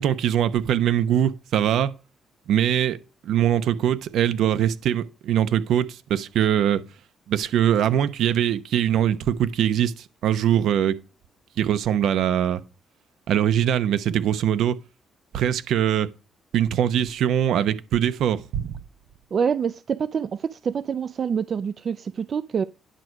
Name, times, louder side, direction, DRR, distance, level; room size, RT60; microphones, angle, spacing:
voice 1, 0.0-1.9 2.5-6.8 7.3-11.0 11.6-12.6 13.3-14.8 15.3-16.1 16.5-18.7, right 10 dB, 75° right, 0.9 m, -22 dB
voice 2, 19.3-22.6, right 7 dB, 50° right, 0.4 m, -26 dB
10.5 x 4.6 x 6.4 m
cardioid pair, 90°, 0 cm